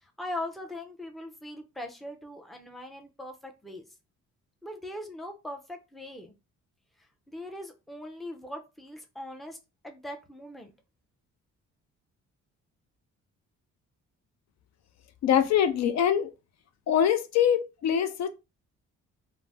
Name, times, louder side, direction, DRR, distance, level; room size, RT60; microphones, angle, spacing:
voice 1, 0.0-3.8 4.6-6.3 7.3-9.6 9.8-10.7, left 1 dB, ahead, 0.5 m, -40 dB
voice 2, 15.2-16.3 16.9-18.3, left 9 dB, 60° left, 0.4 m, -23 dB
2.4 x 2.0 x 3.3 m
cardioid pair, 90°, 30 cm